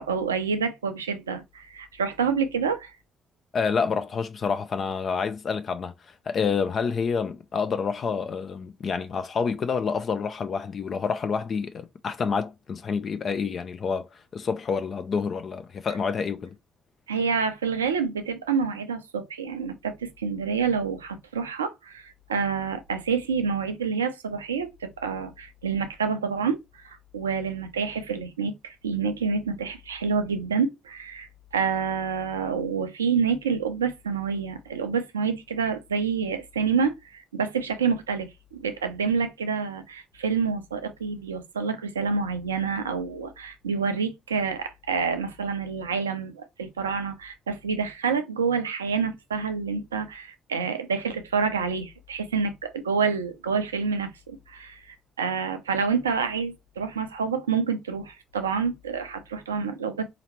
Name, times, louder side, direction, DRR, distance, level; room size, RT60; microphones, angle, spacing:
voice 1, 0.0-2.9 17.1-31.3 31.5-60.0, right 5 dB, 90° right, 0.5 m, -28 dB
voice 2, 3.5-16.6, left 5 dB, 50° left, 0.5 m, -28 dB
4.1 x 2.9 x 2.9 m
hypercardioid pair, 45°, 0 cm